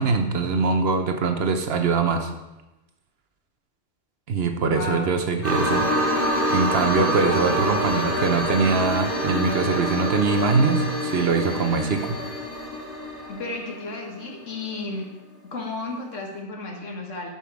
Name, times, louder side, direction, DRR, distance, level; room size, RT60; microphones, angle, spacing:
voice 1, 0.0-2.3 4.3-5.9 6.5-12.2, right 4 dB, 60° right, 6 dB, 1.0 m, -23 dB
voice 2, 4.7-5.1 13.3-15.1 15.5-17.3, left 3 dB, 90° left, 1 dB, 1.9 m, -33 dB
sound 1, 5.4-14.2 14.8-14.9, equal, 45° left, 3.5 m, -26 dB
11.0 x 5.8 x 4.8 m, 1.0 s
omnidirectional pair, 1.2 m